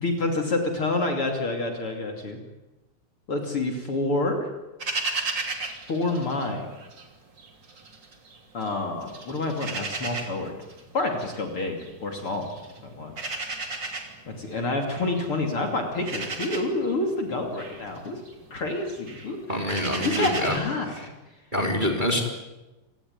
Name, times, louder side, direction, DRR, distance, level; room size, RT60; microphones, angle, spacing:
voice 1, 0.0-2.4 3.3-4.5 5.9-6.6 8.5-10.6 10.9-12.5 12.8-13.1 14.3-18.2 18.5-19.4 20.0-21.1, left 2 dB, 40° left, 3 dB, 3.4 m, -28 dB
sound 1, 4.8-7.1 7.4-8.7 9.0-20.5, right 3 dB, 35° right, 3.3 m, -35 dB
voice 2, 19.5-20.6 20.9-21.1 21.5-22.2, left 1 dB, 15° right, 2 dB, 3.6 m, -26 dB
28.5 x 18.0 x 9.6 m, 1.1 s
omnidirectional pair, 3.8 m